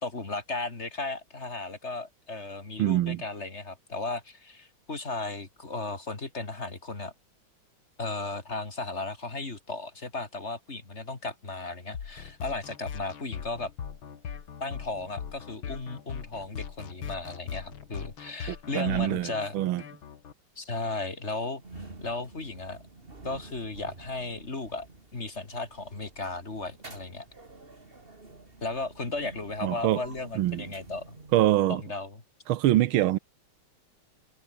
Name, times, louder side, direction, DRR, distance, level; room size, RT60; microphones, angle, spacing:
voice 1, 0.0-7.1 8.0-13.7 14.6-19.6 20.6-22.8 23.2-24.9 25.1-27.3 28.6-31.2 31.7-32.2, left 3 dB, 30° left, 3.3 m, -35 dB
voice 2, 2.8-3.2 18.5-19.8 29.6-30.0 30.4-30.7 31.3-31.8 32.5-33.2, right 14 dB, 85° right, 1.6 m, -25 dB
sound 1, 11.9-20.3, left 7 dB, 80° left, 2.7 m, -40 dB
sound 2, 21.6-31.8, right 3 dB, 25° right, 3.1 m, -48 dB
omnidirectional pair, 2.2 m